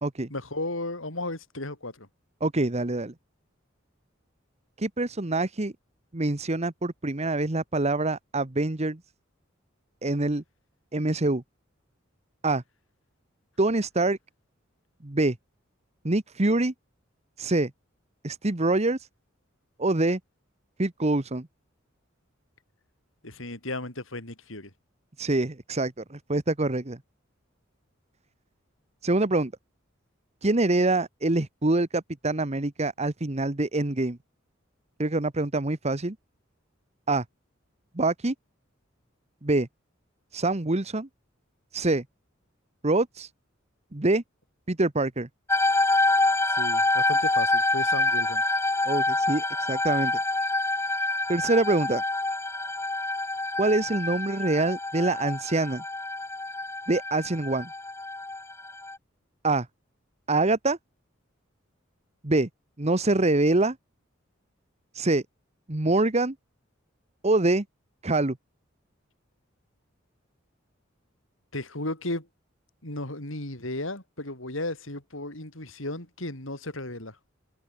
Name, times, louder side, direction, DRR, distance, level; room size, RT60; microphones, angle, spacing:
voice 1, 0.3-2.1 23.2-24.7 46.5-48.4 71.5-72.3 72.8-77.2, left 2 dB, 75° left, 6.3 m, -34 dB
voice 2, 2.4-3.1 4.8-5.7 6.1-9.0 10.0-10.4 10.9-11.4 12.4-12.6 13.6-14.2 15.0-15.4 16.0-16.7 17.4-17.7 18.2-19.1 19.8-20.2 20.8-21.5 25.2-27.0 29.0-29.5 30.4-34.2 35.0-36.2 37.1-37.2 37.9-38.3 39.4-39.7 40.3-41.1 41.7-42.0 42.8-43.3 43.9-44.2 44.7-45.3 48.9-50.2 51.3-52.0 53.6-55.8 56.9-57.7 59.4-59.7 60.3-60.8 62.2-62.5 62.8-63.8 64.9-65.2 65.7-66.3 67.2-67.6 68.0-68.4, right 2 dB, 35° right, 1.3 m, -25 dB
sound 1, 45.5-59.0, left 2 dB, 15° left, 3.2 m, -27 dB
head